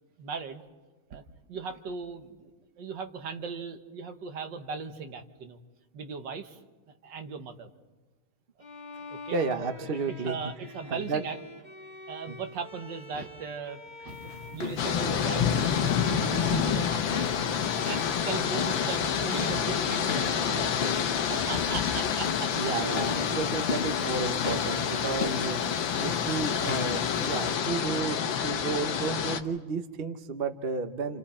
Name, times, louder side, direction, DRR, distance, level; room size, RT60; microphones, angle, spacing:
voice 1, 0.2-0.6 1.1-1.2 1.5-2.5 2.8-5.6 5.9-6.6 7.0-7.7 9.1-9.7 10.2-11.4 12.1-14.2 14.5-15.6 16.0-17.2 17.9-22.5 25.9-26.0, right 5 dB, 60° right, 6 dB, 1.8 m, -38 dB
Bowed string instrument, 8.6-24.5, left 3 dB, 25° left, 1.5 m, -45 dB
voice 2, 9.3-10.4 10.9-11.2 12.3-12.4 22.6-25.6 26.0-31.2, right 4 dB, 45° right, 8 dB, 0.8 m, -32 dB
sound 1, 14.1-27.5, left 5 dB, 40° left, 0.9 m, -37 dB
sound 2, 14.8-29.4, left 8 dB, 70° left, 1.7 m, -28 dB
30.0 x 28.0 x 4.3 m, 1.2 s
omnidirectional pair, 2.3 m